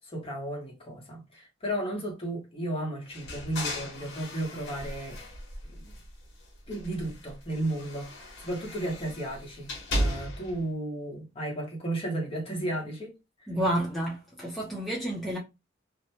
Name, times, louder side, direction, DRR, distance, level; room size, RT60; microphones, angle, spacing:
voice 1, 0.1-5.2 5.7-5.9 6.7-13.1, right 1 dB, 30° left, 1.1 m, -34 dB
sound 1, 3.1-6.3 6.7-10.6, equal, 65° left, 1.1 m, -36 dB
voice 2, 13.5-15.4, right 1 dB, ahead, 0.6 m, -30 dB
2.8 x 2.2 x 2.8 m
head